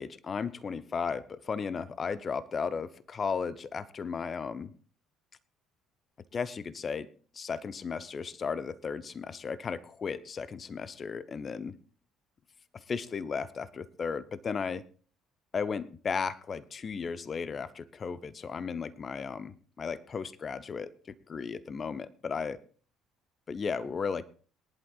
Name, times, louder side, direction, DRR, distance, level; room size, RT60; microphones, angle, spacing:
voice 1, 0.0-4.7 6.3-7.1 7.3-11.8 12.7-14.8 15.5-20.9 21.3-22.6 23.5-24.2, left 5 dB, 35° left, 16 dB, 0.7 m, -35 dB
22.0 x 11.0 x 2.4 m, 0.41 s
figure-of-eight pair, 55°, 0 cm